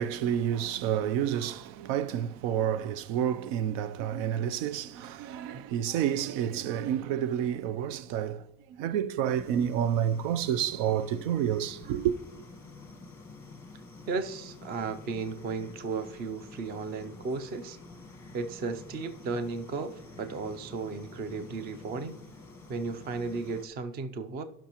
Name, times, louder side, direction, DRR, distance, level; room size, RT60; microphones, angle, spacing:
voice 1, 0.0-12.1, right 10 dB, 80° right, 0.6 m, -29 dB
sound 1, 9.2-23.7, left 3 dB, 5° left, 0.8 m, -49 dB
voice 2, 14.1-17.8 18.3-22.2 22.7-24.4, right 4 dB, 25° right, 0.3 m, -35 dB
16.5 x 6.0 x 2.9 m
cardioid pair, 180°, 42 cm